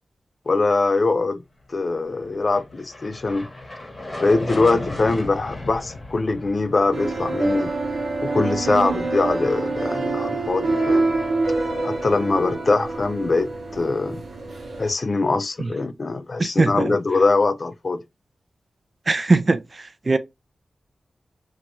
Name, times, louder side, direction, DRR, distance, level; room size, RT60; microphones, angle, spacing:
voice 1, 0.5-1.4 1.7-3.5 4.2-7.7 8.2-11.1 11.8-14.2 14.8-18.0, left 3 dB, 45° left, 0.4 m, -22 dB
sound 1, 2.2-10.6, left 1 dB, 25° left, 0.9 m, -37 dB
sound 2, 6.9-14.9, right 3 dB, 70° right, 0.9 m, -26 dB
voice 2, 16.4-16.9 19.1-19.6 20.1-20.2, right 3 dB, 40° right, 0.3 m, -19 dB
2.6 x 2.2 x 2.9 m
wide cardioid pair, 90°, 0 cm